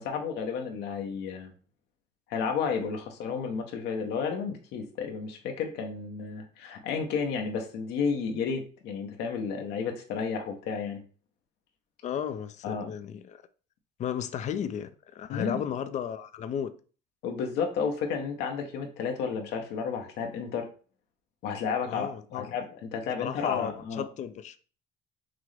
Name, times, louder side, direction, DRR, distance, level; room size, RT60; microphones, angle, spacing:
voice 1, 0.0-1.5 2.3-11.0 12.6-12.9 15.3-15.6 17.2-20.7 21.4-24.0, left 6 dB, 85° left, 0.8 m, -32 dB
voice 2, 12.0-13.4 14.0-16.7 21.9-22.5 23.2-24.6, left 8 dB, 45° left, 0.4 m, -34 dB
5.9 x 2.0 x 3.2 m
cardioid pair, 110°, 17 cm